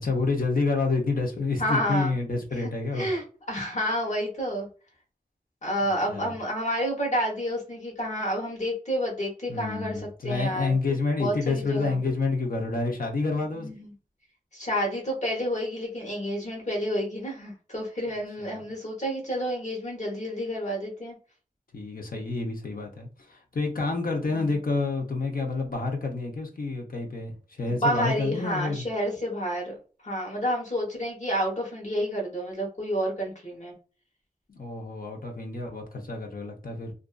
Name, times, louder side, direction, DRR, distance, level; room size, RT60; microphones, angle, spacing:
voice 1, 0.0-3.1 5.9-6.3 9.5-13.7 18.4-18.6 21.7-28.8 34.5-36.9, left 3 dB, 70° left, 0.7 m, -29 dB
voice 2, 1.6-2.1 2.6-4.7 5.6-10.7 11.2-12.0 13.5-13.9 14.5-21.2 24.3-24.4 27.6-29.7 30.0-33.7, equal, 50° left, 1.0 m, -29 dB
2.5 x 2.4 x 2.3 m
wide cardioid pair, 55°, 16 cm